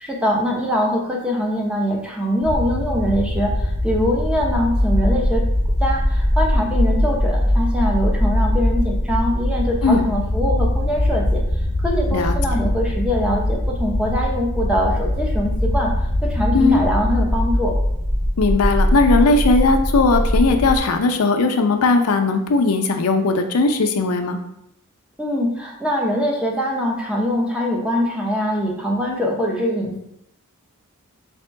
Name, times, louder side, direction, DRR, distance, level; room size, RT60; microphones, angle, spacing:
voice 1, 0.0-5.4 5.8-11.4 11.8-15.9 16.3-17.7 25.2-30.0, equal, 5° right, -1 dB, 0.7 m, -23 dB
sound 1, 2.4-20.8, left 1 dB, 35° right, 1.0 m, -21 dB
voice 2, 12.1-12.6 16.5-16.8 18.4-24.4, left 3 dB, 85° left, 6 dB, 0.5 m, -18 dB
3.4 x 2.9 x 4.5 m, 0.80 s
head